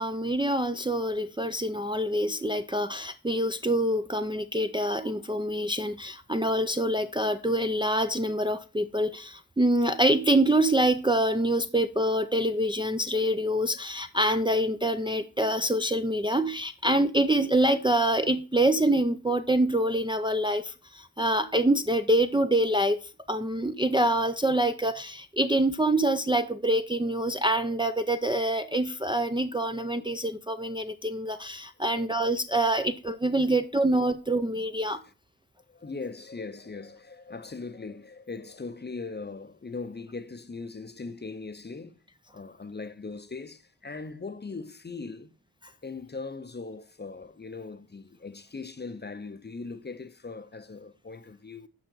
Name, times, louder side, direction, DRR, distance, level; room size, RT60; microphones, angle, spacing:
voice 1, 0.0-23.0 23.3-35.0, right 1 dB, 15° right, 0.5 m, -26 dB
voice 2, 33.3-33.7 34.3-35.1 35.7-42.0 42.3-45.3 45.8-51.7, left 4 dB, 30° left, 0.6 m, -40 dB
9.0 x 5.7 x 3.9 m
wide cardioid pair, 130°, 37 cm